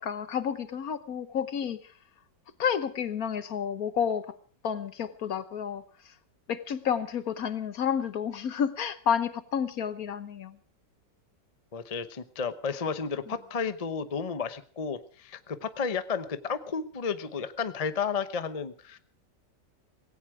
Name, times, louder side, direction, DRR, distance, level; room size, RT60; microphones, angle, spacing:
voice 1, 0.0-1.9 2.6-4.3 4.6-6.1 6.5-10.6 13.3-13.4, left 8 dB, 55° left, 13 dB, 1.3 m, -30 dB
voice 2, 11.7-19.0, left 5 dB, 35° left, 12 dB, 0.6 m, -32 dB
17.5 x 17.0 x 4.8 m, 0.43 s
omnidirectional pair, 2.0 m